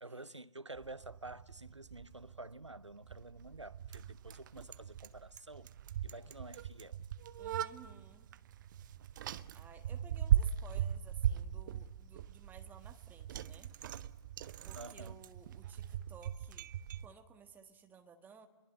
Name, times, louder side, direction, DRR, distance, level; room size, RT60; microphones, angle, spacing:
voice 1, 0.0-5.7 6.0-7.0 14.7-15.2, right 2 dB, 90° right, 0.8 m, -49 dB
Bicycle, 0.8-17.1, right 10 dB, 45° right, 0.8 m, -39 dB
voice 2, 7.4-8.3 9.5-13.7 14.6-16.7 17.0-18.5, right 6 dB, 10° right, 1.5 m, -57 dB
29.5 x 22.5 x 8.2 m
figure-of-eight pair, 120°, 15 cm